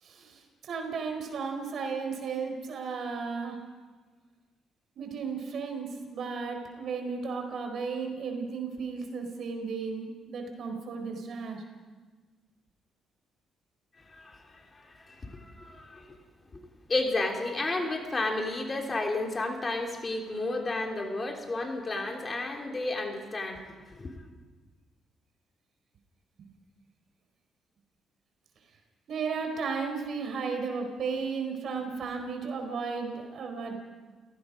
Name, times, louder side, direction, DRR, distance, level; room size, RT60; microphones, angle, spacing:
voice 1, 0.0-3.6 5.0-11.6 29.1-33.7, right 5 dB, 65° right, 4 dB, 4.6 m, -34 dB
voice 2, 14.0-16.2 16.5-16.6 16.9-24.1, left 2 dB, 30° left, 2 dB, 3.3 m, -32 dB
29.5 x 17.5 x 5.2 m, 1.4 s
cardioid pair, 90°, 0 cm